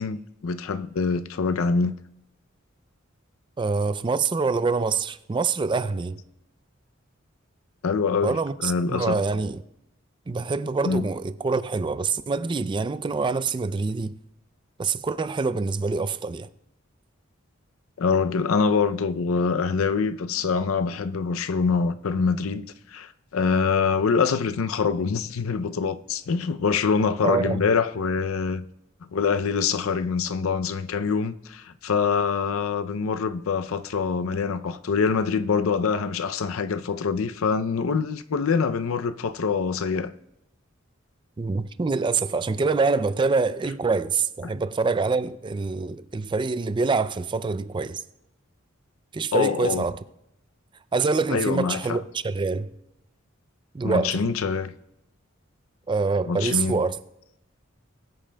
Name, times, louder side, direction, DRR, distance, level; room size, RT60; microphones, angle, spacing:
voice 1, 0.0-2.0 7.8-9.2 10.8-11.0 18.0-22.7 22.9-28.6 29.1-40.1 44.4-44.5 49.3-49.9 51.3-52.0 53.8-54.7 56.3-56.8, left 5 dB, 90° left, 0.5 m, -25 dB
voice 2, 3.6-6.2 8.2-9.6 10.3-14.2 14.8-16.5 27.2-27.7 41.4-48.0 49.1-50.0 50.9-52.7 53.7-54.2 55.9-56.9, right 4 dB, 25° right, 0.3 m, -25 dB
21.0 x 8.7 x 2.2 m
head